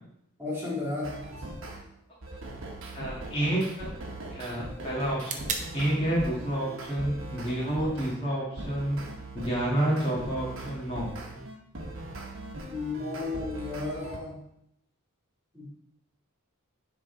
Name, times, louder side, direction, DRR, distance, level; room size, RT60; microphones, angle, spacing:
voice 1, 0.4-1.3 12.7-14.4 15.5-15.7, left 3 dB, 10° right, -6 dB, 2.5 m, -33 dB
sound 1, 1.0-1.8 2.2-8.2 8.6-14.2, right 1 dB, 60° right, 1.2 m, -40 dB
sound 2, 1.2-9.2, right 5 dB, 35° right, 0.8 m, -44 dB
voice 2, 2.9-3.9 4.3-5.4 5.7-9.0 9.3-11.1, right 1 dB, 25° left, -6 dB, 1.9 m, -29 dB
10.0 x 3.7 x 3.9 m, 0.77 s
head